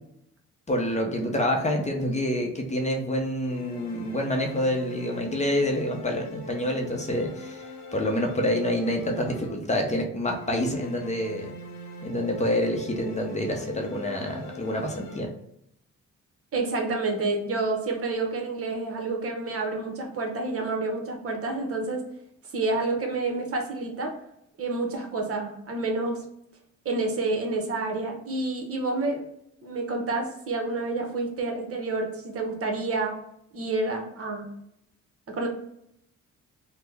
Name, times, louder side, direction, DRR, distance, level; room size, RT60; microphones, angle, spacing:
voice 1, 0.7-7.6 7.9-11.5 12.0-15.3, left 1 dB, 25° left, 2 dB, 0.6 m, -27 dB
sound 1, 3.4-9.9 10.3-15.2, left 1 dB, 70° left, 0.7 m, -42 dB
voice 2, 16.5-22.0 22.5-24.1 24.6-26.2 26.8-29.2 29.6-33.2 33.5-34.5 35.3-35.5, right 3 dB, 50° right, 3 dB, 0.8 m, -29 dB
3.3 x 2.1 x 3.3 m, 0.77 s
cardioid pair, 90°, 30 cm